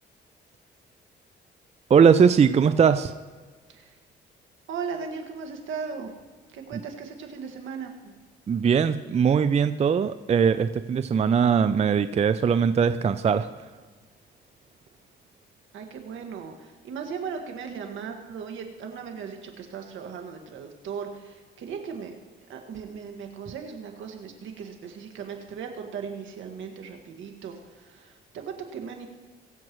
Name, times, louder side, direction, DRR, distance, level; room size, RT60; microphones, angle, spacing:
voice 1, 1.9-3.1 8.5-13.5, right 6 dB, 35° right, 12 dB, 0.4 m, -20 dB
voice 2, 4.7-6.1 6.5-8.1 15.7-22.1 22.5-29.1, right 6 dB, 75° right, 3 dB, 1.8 m, -37 dB
22.5 x 7.6 x 3.1 m, 1.4 s
cardioid pair, 90°, 20 cm